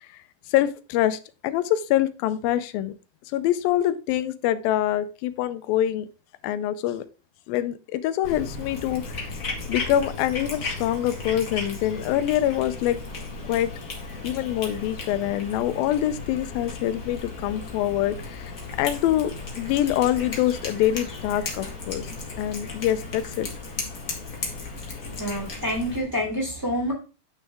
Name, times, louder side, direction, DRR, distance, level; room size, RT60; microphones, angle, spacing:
voice 1, 0.5-2.9 3.3-6.1 6.4-7.1 7.5-9.4 9.7-13.0 13.5-13.7 14.2-18.5 18.8-22.1 22.4-23.5, left 12 dB, 85° left, 2.4 m, -25 dB
Cat, 8.2-26.0, left 3 dB, 35° left, 1.4 m, -35 dB
voice 2, 25.1-26.9, equal, 5° right, 2.7 m, -27 dB
9.5 x 6.2 x 3.5 m
omnidirectional pair, 4.1 m